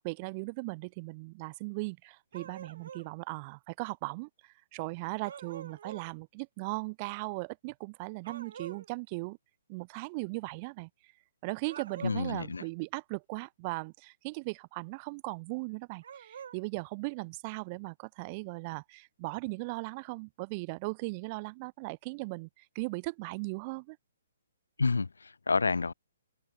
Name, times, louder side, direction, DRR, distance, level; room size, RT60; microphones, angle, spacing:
voice 1, 0.0-9.4 9.7-10.9 11.4-24.0, right 28 dB, 30° right, 3.8 m, -38 dB
sound 1, 2.3-3.1 5.2-6.1 8.2-8.9 11.6-12.4 16.0-16.6, right 8 dB, 50° right, 3.6 m, -46 dB
voice 2, 12.0-12.6 24.8-25.9, left 4 dB, 65° left, 0.7 m, -29 dB
figure-of-eight pair, 125°, 0 cm